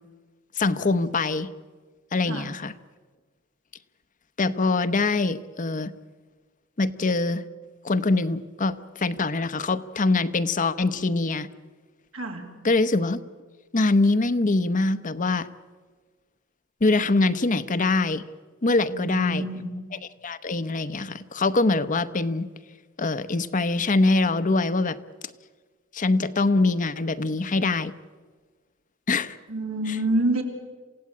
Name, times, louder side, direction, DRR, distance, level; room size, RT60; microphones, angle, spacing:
voice 1, 0.6-1.5 2.1-2.7 4.4-5.9 6.8-7.4 7.8-11.5 12.6-13.2 13.7-15.5 16.8-18.2 18.6-19.4 20.2-22.5 23.0-25.0 25.9-27.9 29.1-29.4, left 3 dB, 40° left, 12 dB, 0.8 m, -23 dB
voice 2, 12.1-12.5 18.9-19.7 29.5-30.4, right 1 dB, 85° right, 2 dB, 3.4 m, -27 dB
27.5 x 16.5 x 8.7 m, 1.4 s
head